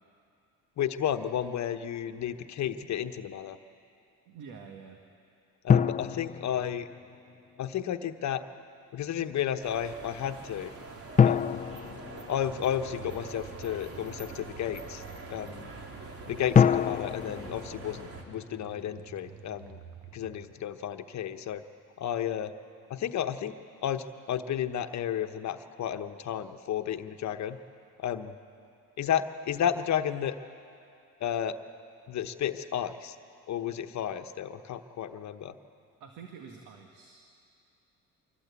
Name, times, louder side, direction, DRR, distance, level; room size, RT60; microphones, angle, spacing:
voice 1, 0.8-3.6 5.6-6.9 7.6-8.4 8.9-10.7 11.2-11.6 12.3-15.0 15.3-15.7 16.3-19.8 20.1-21.6 22.0-22.5 22.9-27.6 28.0-28.4 29.0-30.3 31.2-31.6 32.1-33.2 33.5-35.5, left 9 dB, 55° left, 8 dB, 1.1 m, -32 dB
voice 2, 4.3-5.0 36.0-37.3, right 6 dB, 70° right, 3 dB, 1.9 m, -47 dB
sound 1, 5.7-7.3 11.2-13.1 16.5-18.8, left 7 dB, 25° left, 0.5 m, -26 dB
sound 2, 9.6-18.2, right 3 dB, 45° right, 2.8 m, -45 dB
sound 3, 12.5-20.5, right 8 dB, 85° right, 1.3 m, -50 dB
24.5 x 17.0 x 8.4 m, 2.5 s
supercardioid pair, 85°, 33 cm